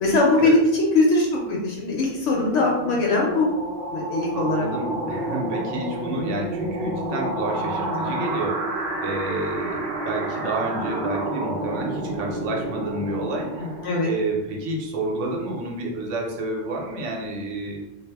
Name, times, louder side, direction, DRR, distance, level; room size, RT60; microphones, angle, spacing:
voice 1, 0.0-3.5 3.9-4.7 13.8-14.1, left 2 dB, 75° left, -2 dB, 0.9 m, -21 dB
sound 1, 1.8-14.4, right 1 dB, 60° right, 0.6 m, -30 dB
voice 2, 4.3-17.8, right 2 dB, 80° right, 0 dB, 1.0 m, -30 dB
2.3 x 2.0 x 3.3 m, 0.95 s
omnidirectional pair, 1.3 m